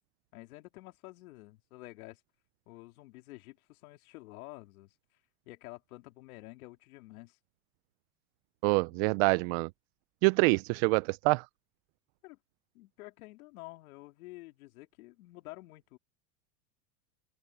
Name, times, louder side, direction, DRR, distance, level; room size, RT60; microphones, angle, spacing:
voice 1, 0.3-2.2 2.7-4.9 5.4-7.4 12.2-12.4 12.7-16.0, left 20 dB, 70° left, 3.3 m, -49 dB
voice 2, 8.6-9.7 10.2-11.4, right 28 dB, 45° right, 0.4 m, -26 dB
open air
supercardioid pair, 125°, 45 cm